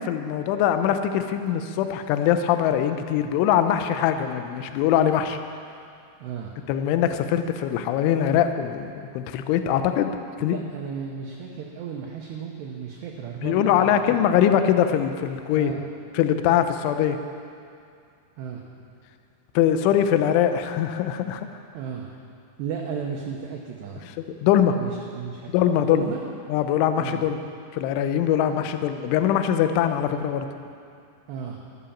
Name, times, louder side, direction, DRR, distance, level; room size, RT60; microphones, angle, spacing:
voice 1, 0.0-5.4 6.7-10.1 10.4-10.6 13.4-15.7 16.1-17.2 19.6-21.5 24.4-24.8 25.5-26.1 26.5-27.4 27.7-30.5, left 10 dB, 80° left, 8 dB, 3.0 m, -22 dB
voice 2, 6.2-6.6 10.4-14.0 15.5-15.8 18.4-18.6 21.7-22.2 22.6-24.0 24.8-26.2 27.0-27.2 28.5-28.7 31.3-31.6, right 7 dB, 75° right, 0 dB, 2.6 m, -34 dB
13.5 x 12.5 x 7.2 m, 2.4 s
omnidirectional pair, 6.0 m